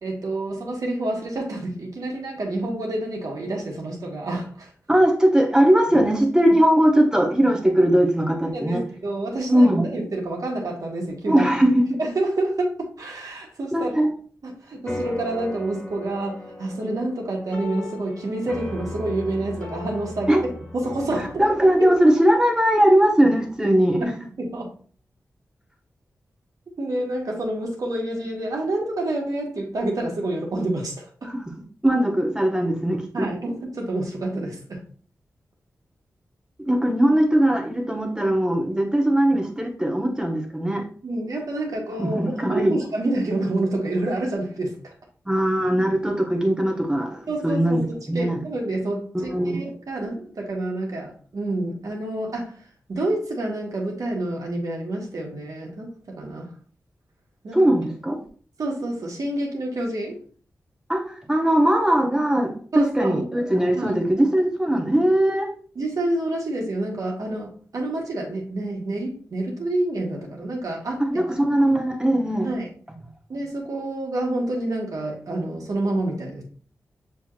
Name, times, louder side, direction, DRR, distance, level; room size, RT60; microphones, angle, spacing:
voice 1, 0.0-4.7 8.5-11.5 12.0-13.9 14.4-21.4 24.0-24.1 24.4-24.7 26.8-31.3 33.1-34.8 41.0-44.9 47.3-56.5 57.4-57.7 58.6-60.2 62.7-63.2 63.7-63.9 65.7-71.0 72.4-72.7 73.3-76.4, right 2 dB, 70° right, 1.3 m, -28 dB
voice 2, 4.9-8.8 9.5-9.9 11.3-11.7 13.7-14.1 20.3-20.4 21.4-24.1 31.3-31.4 31.8-33.3 36.7-40.8 42.0-42.8 45.3-47.8 48.1-48.4 49.1-49.6 57.5-58.2 60.9-65.5 71.0-72.5, right 1 dB, 10° right, 0.9 m, -20 dB
sound 1, 14.9-23.6, left 2 dB, 20° left, 1.5 m, -37 dB
6.7 x 2.9 x 2.4 m
cardioid pair, 70°, 6 cm